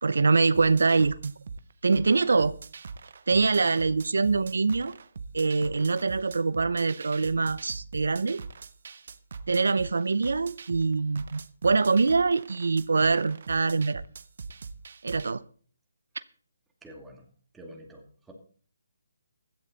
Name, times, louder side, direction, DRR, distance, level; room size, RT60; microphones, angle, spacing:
voice 1, 0.0-1.3 1.8-2.5 3.3-4.9 5.3-8.4 9.5-14.0 15.0-15.4, right 4 dB, 80° right, 17 dB, 0.6 m, -24 dB
sound 1, 0.5-15.3, right 4 dB, 60° right, 0.9 m, -42 dB
voice 2, 16.8-17.2 17.5-18.3, equal, 5° right, 1 dB, 2.5 m, -47 dB
16.0 x 11.5 x 4.0 m, 0.43 s
hypercardioid pair, 160°, 0 cm